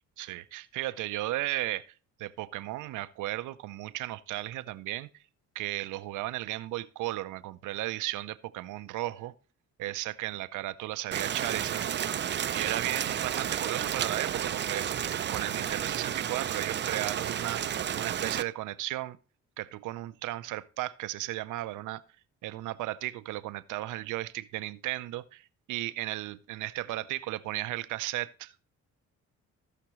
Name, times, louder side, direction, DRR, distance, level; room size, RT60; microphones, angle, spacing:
voice 1, 0.2-1.9 2.2-5.1 5.5-9.3 9.8-11.9 12.1-14.9 15.3-19.2 19.6-22.0 22.4-28.7, right 16 dB, 85° right, 0.6 m, -35 dB
Rain, 11.1-18.4, right 9 dB, 40° right, 0.5 m, -31 dB
17.0 x 5.9 x 3.1 m
cardioid pair, 90°, 30 cm